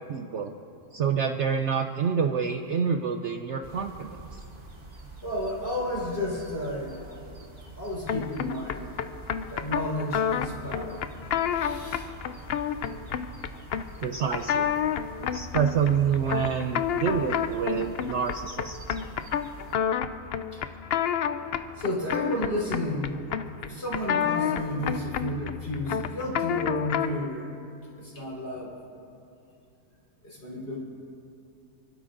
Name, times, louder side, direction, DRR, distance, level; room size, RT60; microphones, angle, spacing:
voice 1, 0.1-0.5 0.9-4.2 14.0-14.7 15.3-18.8, right 7 dB, 60° right, 5 dB, 0.8 m, -27 dB
sound 1, 3.6-19.8, right 2 dB, 40° right, 1.4 m, -46 dB
voice 2, 5.2-7.2 7.8-8.9 9.5-11.1 11.5-12.1 20.5-20.6 21.8-23.2 23.6-27.5 28.0-28.8 30.2-30.8, left 1 dB, 45° left, -6 dB, 4.3 m, -32 dB
sound 2, 8.1-27.3, left 8 dB, 75° left, 0.5 m, -30 dB
29.0 x 12.0 x 2.6 m, 2.6 s
omnidirectional pair, 1.6 m